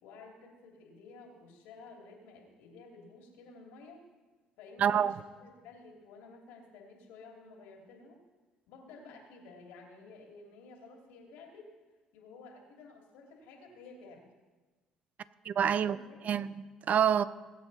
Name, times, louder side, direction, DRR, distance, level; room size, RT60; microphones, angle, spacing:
voice 1, 0.0-4.0 4.6-8.2 8.7-11.7 12.1-14.2 15.6-16.2, left 3 dB, 75° left, 2.8 m, -52 dB
voice 2, 4.8-5.1 15.4-16.0 16.2-17.2, right 8 dB, 50° right, 0.6 m, -27 dB
21.0 x 8.2 x 4.2 m
hypercardioid pair, 60°, 3 cm